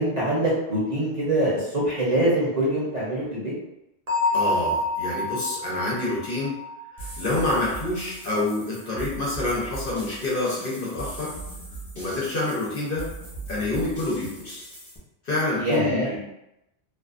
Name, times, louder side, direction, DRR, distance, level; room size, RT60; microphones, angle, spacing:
voice 1, 0.0-3.5 15.6-16.1, right 1 dB, 40° right, -7 dB, 0.8 m, -24 dB
Bell, 4.1-7.7, left 2 dB, 60° right, 1.1 m, -28 dB
voice 2, 4.3-6.5 7.0-11.3 11.9-13.1 13.5-14.6 15.3-16.2, left 2 dB, 55° left, -5 dB, 0.9 m, -27 dB
sound 1, 7.0-15.0, right 3 dB, 30° left, 1.1 m, -39 dB
2.6 x 2.3 x 2.4 m, 0.87 s
omnidirectional pair, 1.1 m